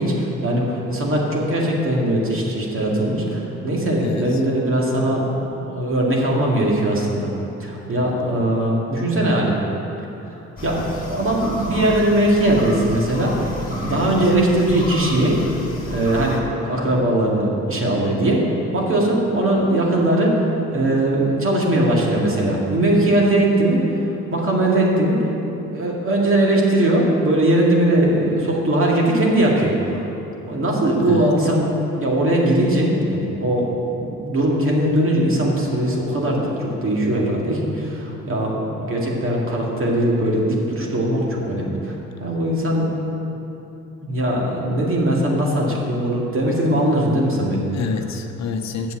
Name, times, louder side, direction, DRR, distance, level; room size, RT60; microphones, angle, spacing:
voice 1, 0.0-7.3 7.6-9.5 10.6-15.4 15.8-18.4 18.7-24.0 24.3-25.2 25.6-30.0 30.4-42.9 44.0-47.7, right 1 dB, 45° right, -2 dB, 2.3 m, -20 dB
voice 2, 4.0-4.4 13.9-14.3 31.1-31.3 47.7-48.9, left 5 dB, 65° left, 6 dB, 0.8 m, -28 dB
sound 1, 10.6-16.4, left 2 dB, 30° left, 2.2 m, -32 dB
7.9 x 7.0 x 7.5 m, 3.0 s
cardioid pair, 90°, 30 cm